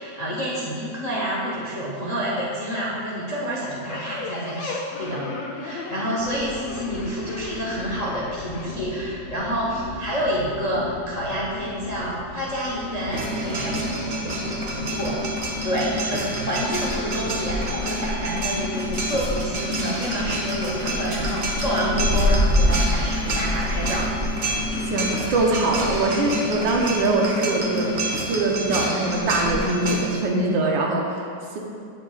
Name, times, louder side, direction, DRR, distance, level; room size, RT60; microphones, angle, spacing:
voice 1, 0.0-5.3 5.5-13.8 14.7-15.2 15.6-24.1 27.6-27.9, equal, 40° left, -6 dB, 0.5 m, -28 dB
sound 1, 3.9-8.7, left 3 dB, 85° left, 1.5 m, -35 dB
sound 2, 6.2-26.2, left 4 dB, 70° left, 1.0 m, -38 dB
sound 3, 13.1-30.1, equal, 50° right, 0.5 m, -26 dB
voice 2, 24.9-27.9 28.2-31.6, right 2 dB, 80° right, -1 dB, 1.6 m, -23 dB
9.0 x 6.5 x 2.3 m, 2.4 s
omnidirectional pair, 2.0 m